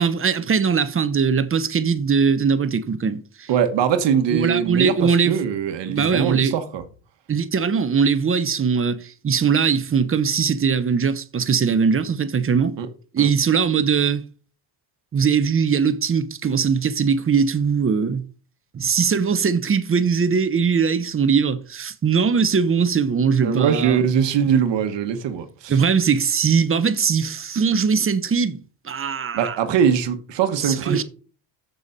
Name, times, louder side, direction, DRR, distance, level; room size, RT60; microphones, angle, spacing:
voice 1, 0.0-3.5 4.3-5.4 5.9-6.5 7.3-12.7 13.1-14.2 15.1-18.2 18.7-24.0 25.7-28.6 28.8-29.6 30.6-31.0, right 6 dB, 30° right, 0.9 m, -20 dB
voice 2, 3.5-6.8 12.8-12.9 13.2-13.3 23.4-25.8 29.3-31.0, right 8 dB, 70° right, 1.3 m, -22 dB
7.1 x 6.9 x 5.2 m
cardioid pair, 120°, 45 cm